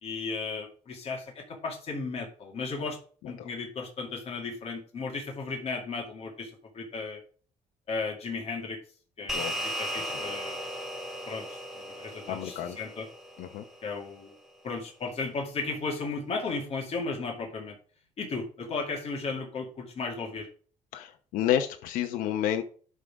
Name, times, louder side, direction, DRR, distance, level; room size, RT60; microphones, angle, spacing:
voice 1, 0.0-3.0 3.3-7.2 7.9-8.8 9.2-10.7 11.3-13.1 13.8-14.3 14.6-17.8 18.2-20.5, left 4 dB, 45° left, 0 dB, 2.3 m, -35 dB
sound 1, 9.3-13.9, equal, ahead, 2.3 m, -36 dB
voice 2, 12.3-12.8 13.4-13.6 20.9-22.6, left 11 dB, 90° left, 6 dB, 0.9 m, -30 dB
11.5 x 3.8 x 4.8 m, 0.42 s
cardioid pair, 120°, 14 cm